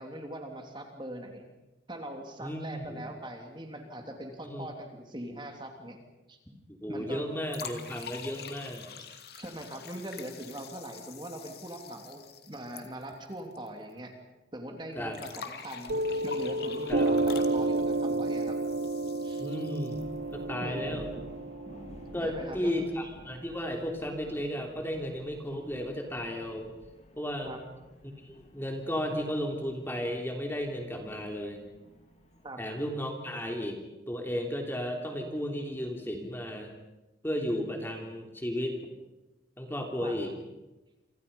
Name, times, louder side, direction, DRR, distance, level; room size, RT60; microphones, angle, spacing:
voice 1, 0.0-1.4 1.9-6.0 6.3-6.4 6.9-7.3 9.4-14.1 14.5-16.0 16.2-18.6 19.2-19.4 20.6-21.0 22.2-22.7 27.4-27.6 32.4-32.6 40.0-40.2, right 1 dB, 25° right, 3 dB, 3.1 m, -41 dB
voice 2, 2.4-3.0 4.4-4.7 6.7-8.9 15.0-15.2 16.9-17.1 19.4-20.0 20.3-21.1 22.1-26.7 27.2-27.5 28.0-31.6 32.6-33.8 34.1-36.7 37.2-38.8 39.6-40.3, equal, 10° left, 2 dB, 3.2 m, -34 dB
sound 1, 7.5-13.7 13.9-14.0 15.1-20.2, left 6 dB, 55° left, 2.5 m, -46 dB
Piano, 15.9-23.0, right 2 dB, 65° right, 0.8 m, -31 dB
sound 2, 19.9-32.5, equal, 35° left, 3.5 m, -53 dB
28.5 x 26.0 x 5.5 m, 1.0 s
head